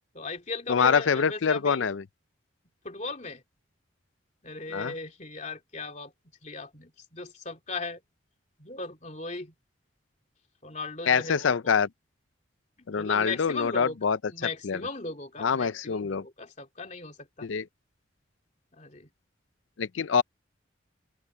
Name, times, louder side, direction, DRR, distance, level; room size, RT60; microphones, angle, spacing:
voice 1, 0.1-1.9 2.8-3.4 4.4-6.1 6.4-8.0 8.6-9.5 10.6-11.7 12.8-14.0 14.3-17.5 18.7-19.1, left 3 dB, 35° left, 2.9 m, -37 dB
voice 2, 0.7-2.0 4.7-4.9 11.1-11.9 12.9-14.2 14.6-14.8 15.4-16.2 17.4-17.6 19.8-20.2, left 6 dB, 80° left, 0.5 m, -25 dB
open air
head